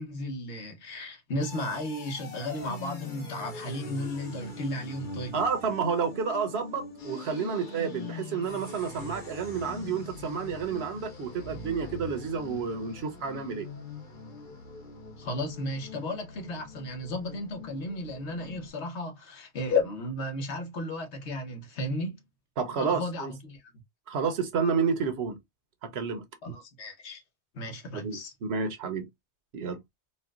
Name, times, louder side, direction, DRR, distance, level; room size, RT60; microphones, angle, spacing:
voice 1, 0.0-5.3 15.2-22.2 22.8-23.7 26.4-27.2 27.5-28.3, left 2 dB, 80° left, 1.3 m, -34 dB
sound 1, 1.4-18.7, left 3 dB, 50° left, 1.0 m, -43 dB
voice 2, 5.3-13.7 22.6-23.3 24.1-25.4 25.8-26.2 27.9-29.1 29.5-29.8, right 5 dB, 70° right, 1.0 m, -30 dB
4.2 x 2.2 x 2.3 m
omnidirectional pair, 1.1 m